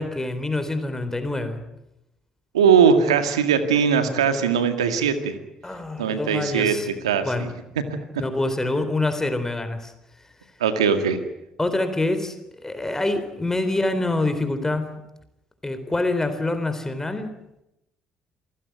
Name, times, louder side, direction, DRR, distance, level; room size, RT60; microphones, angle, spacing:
voice 1, 0.0-1.6 5.6-6.9 7.2-7.5 8.2-9.9 11.6-14.9 15.6-17.3, left 2 dB, 15° left, 9 dB, 3.9 m, -26 dB
voice 2, 2.5-5.3 6.0-6.7 7.0-7.5 10.6-11.2, right 7 dB, 85° right, 9 dB, 2.1 m, -20 dB
27.5 x 16.5 x 9.4 m, 0.87 s
hypercardioid pair, 50°, 3 cm